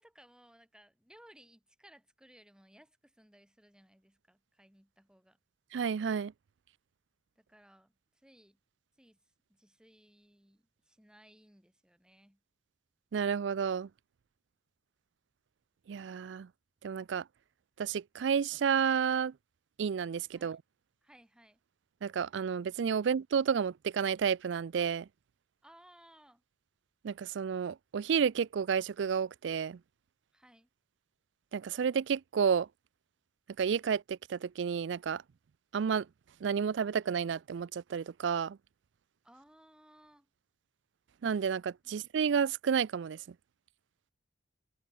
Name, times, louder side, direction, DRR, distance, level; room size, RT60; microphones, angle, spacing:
voice 1, 0.0-5.4 7.4-8.6 9.0-9.2 9.5-12.4 20.3-20.6 21.0-21.6 25.6-26.4 30.3-30.7 39.2-40.3 41.8-42.0, right 1 dB, 5° right, 2.8 m, -61 dB
voice 2, 5.7-6.3 13.1-13.9 15.9-16.5 16.8-17.2 17.8-19.3 19.8-20.6 22.0-25.1 27.0-29.8 31.5-32.7 33.6-35.2 35.7-36.1 36.4-38.6 41.2-43.2, right 7 dB, 75° right, 0.4 m, -31 dB
head